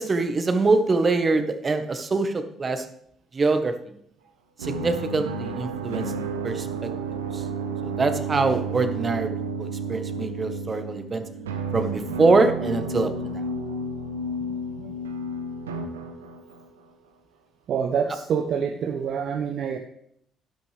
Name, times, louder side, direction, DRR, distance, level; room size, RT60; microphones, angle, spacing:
voice 1, 0.0-2.8 3.3-3.9 4.6-6.1 6.4-6.9 7.3-7.4 7.9-9.3 9.6-11.2 11.7-13.4, right 3 dB, 35° right, 8 dB, 1.4 m, -24 dB
sound 1, 4.6-16.7, right 3 dB, 85° right, 0.8 m, -31 dB
voice 2, 17.7-19.8, right 7 dB, 55° right, 5 dB, 0.9 m, -27 dB
12.0 x 11.5 x 3.5 m, 0.70 s
hypercardioid pair, 50°, 0 cm